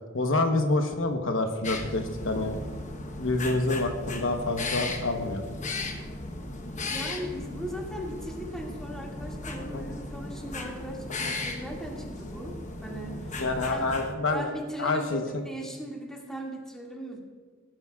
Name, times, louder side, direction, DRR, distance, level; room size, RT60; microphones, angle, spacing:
voice 1, 0.1-2.6 3.2-5.5 9.7-9.8 13.4-14.5 14.8-15.2, left 2 dB, 70° left, 4 dB, 1.1 m, -27 dB
sound 1, 1.6-14.1, left 2 dB, 40° left, 1.1 m, -36 dB
voice 2, 6.9-13.4 13.7-13.8 14.3-17.2, equal, 5° left, -2 dB, 2.2 m, -38 dB
19.0 x 12.0 x 2.4 m, 1.4 s
head